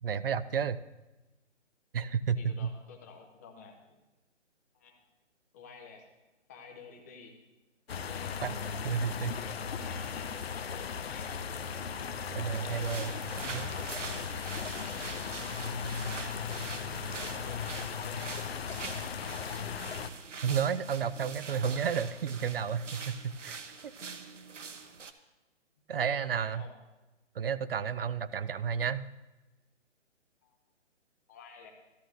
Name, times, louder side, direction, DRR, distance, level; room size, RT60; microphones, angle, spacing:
voice 1, 0.0-0.8 1.9-2.7 8.4-8.5 8.8-9.3 12.3-13.1 13.5-13.7 20.4-23.9 25.9-26.6 27.4-29.1, right 7 dB, 50° right, 16 dB, 0.4 m, -31 dB
voice 2, 2.4-4.0 4.7-5.0 5.5-6.1 6.5-7.3 8.0-8.4 9.3-11.3 12.5-14.3 14.8-15.1 15.8-16.5 17.1-18.3 26.0-26.7 30.4-30.6 31.3-31.7, left 5 dB, 15° left, 2 dB, 0.7 m, -51 dB
sound 1, 7.9-20.1, left 6 dB, 55° left, 0.6 m, -37 dB
sound 2, 12.5-25.1, right 5 dB, 80° right, 0.9 m, -44 dB
13.0 x 12.5 x 2.5 m, 1.1 s
figure-of-eight pair, 150°, 36 cm